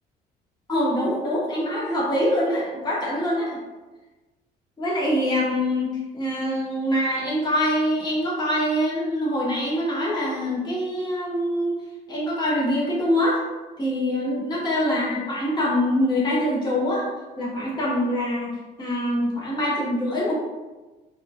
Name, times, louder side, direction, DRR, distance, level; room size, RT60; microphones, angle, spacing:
voice 1, 0.7-3.6 4.8-5.9 6.1-11.8 12.1-13.4 13.8-17.1 17.4-18.5 18.8-20.3, equal, 25° left, -5 dB, 0.8 m, -24 dB
2.8 x 2.2 x 2.5 m, 1.2 s
cardioid pair, 110°, 17 cm